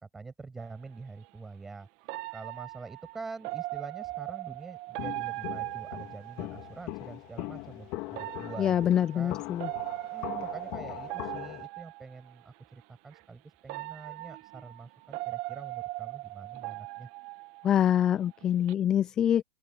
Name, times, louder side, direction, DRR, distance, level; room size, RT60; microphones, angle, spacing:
voice 1, 0.0-1.9 2.3-8.9 9.1-9.4 10.1-17.1, right 4 dB, 10° right, 7.2 m, -45 dB
sound 1, 0.6-0.7 2.1-6.8 8.1-12.3 13.1-13.2 13.7-18.1 18.4-18.7, right 21 dB, 55° right, 1.7 m, -39 dB
Walk footsteps, 5.0-11.7, left 22 dB, 55° left, 3.5 m, -41 dB
voice 2, 8.6-9.7 17.6-19.4, left 10 dB, 25° left, 0.4 m, -25 dB
open air
supercardioid pair, 135°, 2 cm